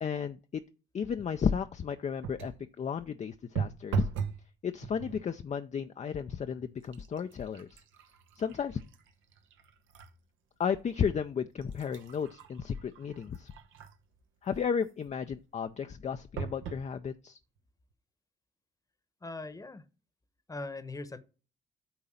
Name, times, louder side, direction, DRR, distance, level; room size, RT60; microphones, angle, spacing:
voice 1, 0.0-0.6 0.9-2.5 2.8-4.1 4.6-7.8 8.4-8.8 10.6-13.5 14.4-17.4, left 7 dB, 35° left, 0.5 m, -33 dB
sound 1, 2.2-2.7 3.6-4.5 4.8-5.3 6.0-6.2 6.6-10.2 10.6-10.7 11.4-14.1 16.4-16.9 17.6-17.7 17.9-18.0, right 7 dB, 80° right, 1.0 m, -39 dB
voice 2, 19.2-19.8 20.5-21.2, left 2 dB, 15° left, 1.0 m, -40 dB
8.8 x 4.0 x 5.5 m
cardioid pair, 90°, 20 cm